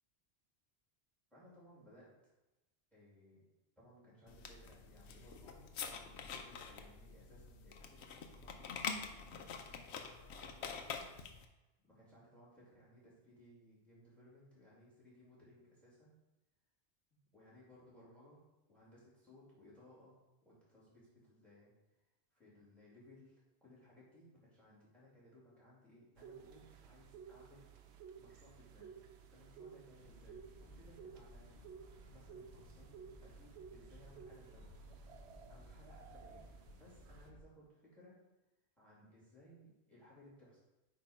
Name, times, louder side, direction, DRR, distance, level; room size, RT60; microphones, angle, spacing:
voice 1, 1.3-2.1 2.9-3.4 3.8-5.6 6.0-8.9 9.3-9.8 10.3-11.1 11.8-16.2 17.3-18.4 18.7-21.7 22.3-27.6 28.2-29.0 29.3-32.9 33.2-34.8 35.5-38.2 38.8-40.6, left 1 dB, ahead, -7 dB, 2.3 m, -62 dB
sound 1, 4.3-11.5, left 6 dB, 80° left, 0.9 m, -46 dB
sound 2, 26.2-37.3, right 7 dB, 80° right, 0.9 m, -56 dB
sound 3, 30.0-37.4, left 1 dB, 45° left, 0.7 m, -58 dB
8.1 x 2.9 x 4.9 m, 1.0 s
omnidirectional pair, 1.1 m